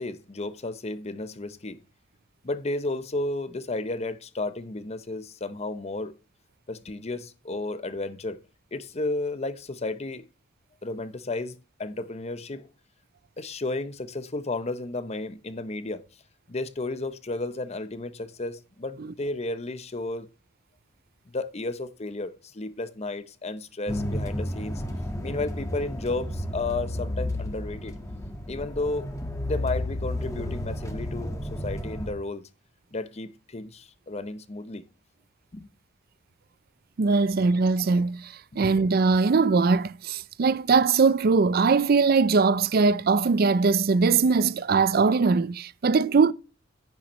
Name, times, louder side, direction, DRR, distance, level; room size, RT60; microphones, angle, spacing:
voice 1, 0.0-1.8 2.4-6.1 6.7-8.4 8.7-10.2 10.8-12.7 13.4-16.0 16.5-20.3 21.3-24.8 25.2-27.9 28.5-29.1 29.4-32.5 32.9-34.8 35.5-35.7 38.5-38.6, left 2 dB, 35° left, 0.8 m, -33 dB
sound 1, 23.9-32.1, left 1 dB, 15° left, 1.6 m, -32 dB
voice 2, 37.0-38.3 38.6-46.3, right 4 dB, 50° right, 0.5 m, -21 dB
10.5 x 8.7 x 3.1 m
head